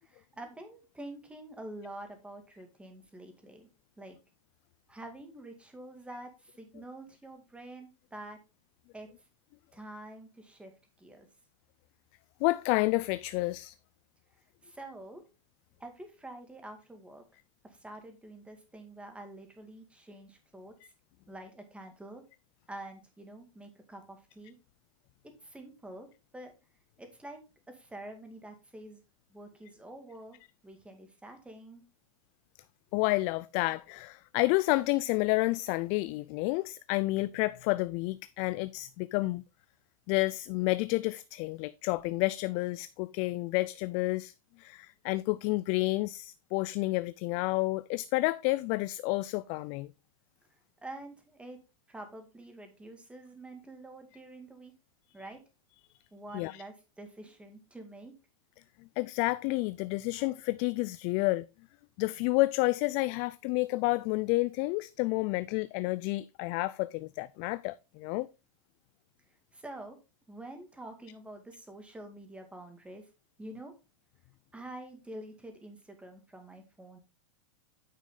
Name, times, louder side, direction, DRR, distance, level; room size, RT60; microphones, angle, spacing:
voice 1, 0.0-3.7 4.0-4.2 4.9-8.4 8.9-9.1 9.7-10.7 11.0-11.3 14.6-15.2 15.8-17.2 17.6-20.7 21.3-22.2 22.7-24.6 25.4-26.1 26.3-26.5 27.0-27.4 27.7-29.0 29.3-30.4 30.6-31.8 50.5-51.6 51.9-54.7 55.1-55.4 56.1-58.1 69.5-70.0 70.3-73.1 73.4-73.7 74.5-77.0, right 1 dB, 5° right, 2.1 m, -47 dB
voice 2, 12.4-13.7 32.9-39.4 40.1-44.3 44.6-49.9 56.3-56.6 59.0-61.5 62.0-68.3, left 21 dB, 40° left, 0.4 m, -30 dB
9.2 x 6.2 x 3.8 m
hypercardioid pair, 130°, 18 cm